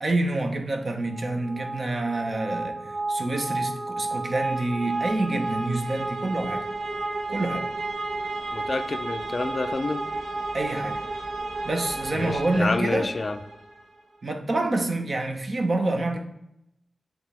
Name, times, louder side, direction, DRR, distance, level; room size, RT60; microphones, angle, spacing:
voice 1, 0.0-6.6 7.3-7.7 10.5-11.0 11.6-13.1 14.2-16.3, right 2 dB, 50° right, 4 dB, 0.9 m, -27 dB
sound 1, 1.0-13.8, right 2 dB, 80° right, 1.0 m, -32 dB
voice 2, 8.5-10.0 12.1-13.4, left 3 dB, 45° left, 9 dB, 0.4 m, -28 dB
7.8 x 3.6 x 3.3 m, 0.81 s
wide cardioid pair, 100°, 0 cm